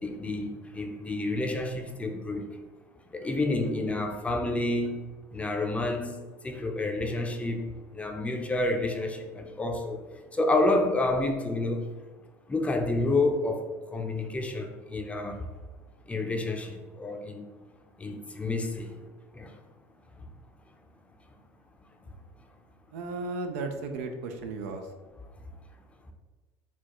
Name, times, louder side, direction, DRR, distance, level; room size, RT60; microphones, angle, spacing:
voice 1, 0.0-2.6 3.1-7.7 7.9-11.9 12.5-15.5 16.0-17.5 18.0-18.9 19.3-19.5 20.2-20.3 22.0-22.1, left 2 dB, 15° left, 4 dB, 0.5 m, -29 dB
voice 2, 22.9-24.9, right 3 dB, 85° right, 5 dB, 0.5 m, -35 dB
4.2 x 2.3 x 3.0 m, 1.4 s
supercardioid pair, 95°, 8 cm